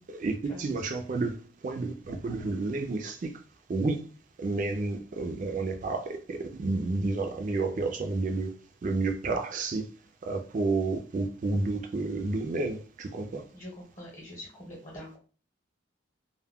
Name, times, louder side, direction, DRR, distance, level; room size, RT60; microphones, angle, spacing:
voice 1, 0.1-3.3 3.7-4.0 4.4-8.5 8.8-9.9 10.2-13.4, right 3 dB, 40° right, 0.3 m, -30 dB
voice 2, 13.5-15.2, equal, 30° left, 0.8 m, -44 dB
2.2 x 2.1 x 3.4 m
head